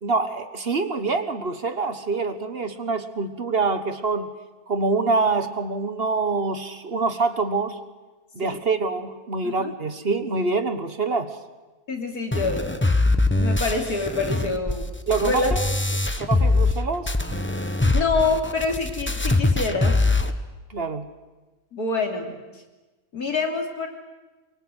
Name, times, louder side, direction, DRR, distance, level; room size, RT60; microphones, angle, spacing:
voice 1, 0.0-4.3 4.7-7.8 8.3-11.4 15.1-15.6 16.3-17.1 20.7-21.1, right 4 dB, 40° right, 10 dB, 1.4 m, -25 dB
voice 2, 9.4-9.7 11.9-14.9 15.2-15.6 17.9-20.0 21.7-22.6 23.1-23.9, left 3 dB, 85° left, 3 dB, 3.5 m, -26 dB
sound 1, 12.3-16.8 17.1-20.3, left 2 dB, 10° left, 0.9 m, -23 dB
24.0 x 23.5 x 8.1 m, 1.2 s
omnidirectional pair, 1.6 m